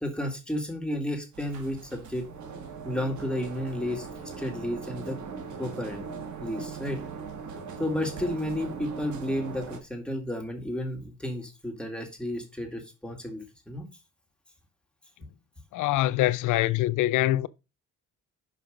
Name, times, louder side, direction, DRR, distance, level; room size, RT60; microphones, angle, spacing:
voice 1, 0.0-2.3 2.8-4.1 4.4-5.2 5.6-6.0 6.4-7.0 7.8-13.9, left 1 dB, 5° left, 2.0 m, -32 dB
sound 1, 1.3-9.8, right 5 dB, 75° right, 1.5 m, -40 dB
voice 2, 15.7-17.5, left 15 dB, 85° left, 0.5 m, -24 dB
5.6 x 5.1 x 5.1 m
cardioid pair, 90°, 30 cm